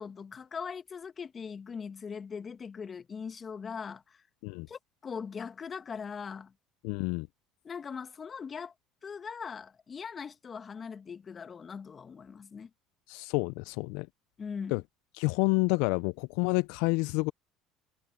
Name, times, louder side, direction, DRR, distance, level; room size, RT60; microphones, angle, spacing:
voice 1, 0.0-4.2 4.7-6.5 7.6-8.7 9.0-12.7 14.4-14.8, left 6 dB, 35° left, 1.7 m, -40 dB
voice 2, 6.8-7.3 13.1-14.1 14.7-14.8 15.1-17.3, left 27 dB, 75° left, 0.4 m, -29 dB
hypercardioid pair, 70°, 0 cm